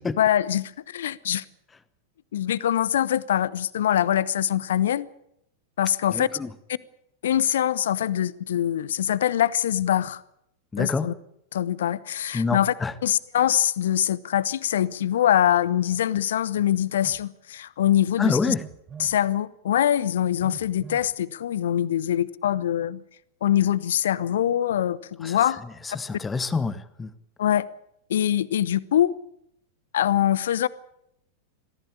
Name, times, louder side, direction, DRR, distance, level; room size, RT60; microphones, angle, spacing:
voice 1, 0.2-1.4 2.3-5.1 5.8-6.3 7.2-10.2 10.8-11.1 11.5-12.7 13.0-18.4 19.0-23.0 23.4-25.6 27.4-27.7 28.1-29.1 29.9-30.7, left 11 dB, 60° left, 0.8 m, -23 dB
voice 2, 6.1-6.5 10.7-11.1 12.3-12.9 18.2-18.6 25.2-25.4 25.8-27.1, left 4 dB, 15° left, 1.3 m, -27 dB
Telephone, 17.0-17.2 18.5-19.2 20.4-21.1, right 7 dB, 20° right, 1.7 m, -43 dB
23.0 x 15.5 x 8.7 m
figure-of-eight pair, 90°, 0 cm